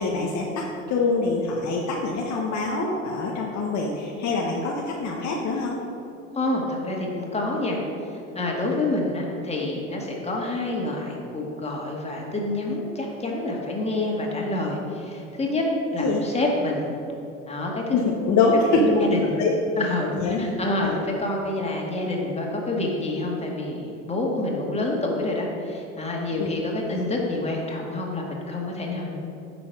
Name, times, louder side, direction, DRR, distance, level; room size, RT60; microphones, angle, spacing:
voice 1, 0.0-5.8 16.0-16.2 17.9-19.5 20.2-20.5 20.8-21.0 26.4-26.5, left 3 dB, 45° left, -1 dB, 1.1 m, -24 dB
voice 2, 6.4-7.8 8.3-15.6 15.9-16.9 17.5-17.9 18.7-19.3 19.8-29.2, left 2 dB, 15° left, -1 dB, 2.0 m, -27 dB
10.0 x 6.1 x 4.7 m, 2.8 s
hypercardioid pair, 80°, 40 cm